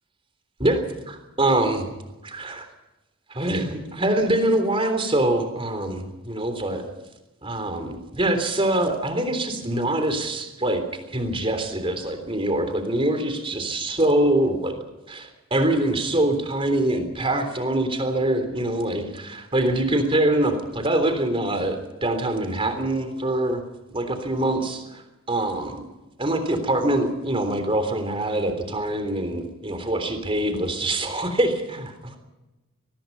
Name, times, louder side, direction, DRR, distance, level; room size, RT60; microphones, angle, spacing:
voice 1, 0.6-1.9 2.2-2.7 3.3-6.8 7.4-10.8 11.1-14.8 15.1-23.6 23.9-25.0 25.3-25.8 26.2-32.2, right 1 dB, 25° right, 7 dB, 3.5 m, -24 dB
24.0 x 20.0 x 5.5 m, 1.0 s
head